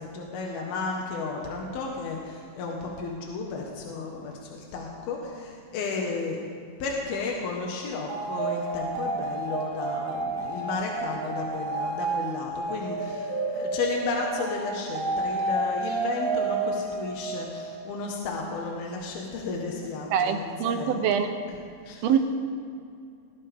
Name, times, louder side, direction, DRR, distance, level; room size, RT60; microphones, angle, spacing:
voice 1, 0.0-6.4 6.8-21.5 21.8-22.1, left 4 dB, 80° left, -1 dB, 3.3 m, -33 dB
sound 1, 8.1-17.8, right 3 dB, 40° right, 2.7 m, -30 dB
voice 2, 20.1-21.4 22.0-22.2, right 8 dB, 85° right, 7 dB, 2.8 m, -24 dB
21.5 x 16.5 x 3.6 m, 2.4 s
omnidirectional pair, 4.3 m